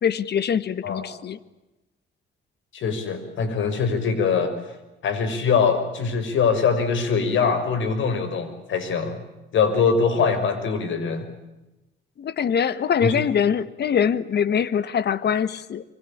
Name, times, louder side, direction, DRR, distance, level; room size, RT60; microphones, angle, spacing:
voice 1, 0.0-1.4 12.2-15.8, left 7 dB, 60° left, 1.6 m, -23 dB
voice 2, 2.7-4.6 5.0-9.2 9.5-11.3 13.0-13.1, left 5 dB, 75° left, 5.9 m, -23 dB
26.0 x 25.0 x 8.7 m
cardioid pair, 90°, 20 cm